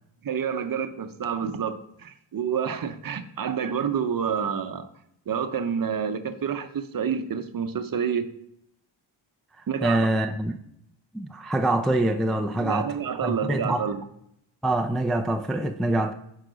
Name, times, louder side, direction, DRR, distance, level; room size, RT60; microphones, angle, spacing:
voice 1, 0.2-4.9 5.3-8.3 9.7-10.1 12.5-14.0, right 7 dB, 45° right, 0.7 m, -28 dB
voice 2, 9.8-10.6 11.1-13.0 13.2-13.8 14.6-16.1, right 1 dB, ahead, 0.3 m, -25 dB
9.4 x 4.8 x 3.9 m
cardioid pair, 90°, 49 cm